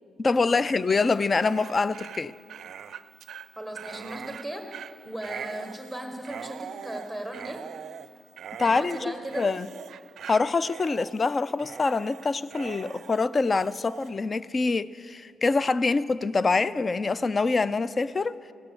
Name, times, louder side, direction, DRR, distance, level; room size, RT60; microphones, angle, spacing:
voice 1, 0.2-2.3 8.6-9.7 10.3-18.4, left 4 dB, 30° left, 0.3 m, -25 dB
Dog, 1.1-14.1, right 8 dB, 65° right, 0.4 m, -42 dB
voice 2, 3.6-7.6 8.6-9.7, right 1 dB, 5° left, 1.6 m, -37 dB
16.5 x 7.0 x 6.9 m
cardioid pair, 90°, 0 cm